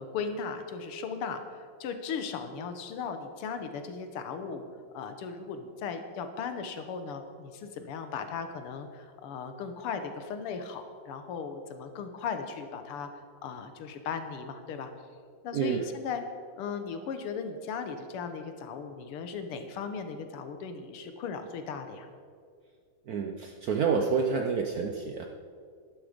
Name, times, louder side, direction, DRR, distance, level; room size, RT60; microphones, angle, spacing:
voice 1, 0.0-4.6 4.9-14.9 15.4-16.2 16.6-22.1, left 6 dB, 90° left, 8 dB, 2.0 m, -37 dB
voice 2, 15.5-15.9 23.1-25.3, right 5 dB, 70° right, 4 dB, 0.9 m, -28 dB
12.0 x 11.0 x 5.1 m, 2.1 s
omnidirectional pair, 2.4 m